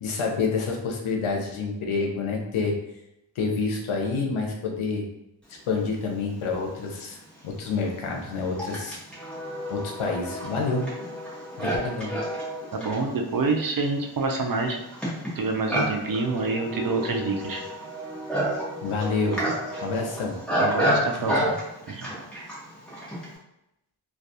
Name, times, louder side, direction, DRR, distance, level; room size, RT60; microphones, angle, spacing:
voice 1, 0.0-2.7 3.4-5.1 5.7-7.2 7.4-9.0 9.7-10.8 11.6-12.1 18.8-19.5 19.8-20.3 21.2-21.5, left 4 dB, 85° left, 1 dB, 0.6 m, -28 dB
Livestock farm animals working animals, 6.6-6.7 7.4-23.4, equal, ahead, 0.9 m, -30 dB
voice 2, 12.7-14.8 15.3-17.6 20.6-21.4 21.9-22.1, right 3 dB, 45° right, 3 dB, 0.4 m, -27 dB
2.3 x 2.3 x 2.7 m, 0.86 s
cardioid pair, 60°, 48 cm